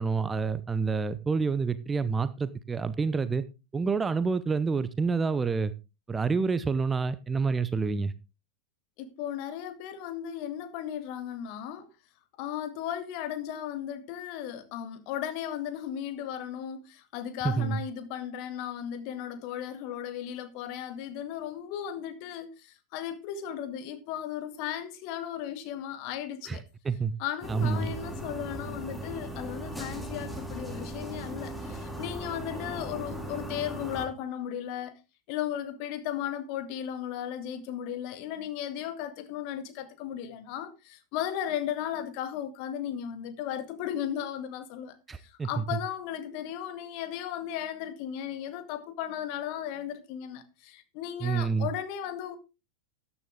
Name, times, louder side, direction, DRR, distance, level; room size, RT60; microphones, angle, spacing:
voice 1, 0.0-3.4 3.7-5.7 6.1-8.1 17.4-17.8 26.5-27.1 27.5-27.9 45.1-45.8 51.2-51.7, right 4 dB, 15° right, 0.7 m, -28 dB
voice 2, 9.0-11.9 12.4-26.6 27.2-35.0 35.3-44.9 45.4-52.4, left 10 dB, 45° left, 1.9 m, -36 dB
sound 1, 27.4-34.1, right 1 dB, ahead, 2.8 m, -38 dB
13.5 x 9.7 x 3.6 m
figure-of-eight pair, 90°, 0 cm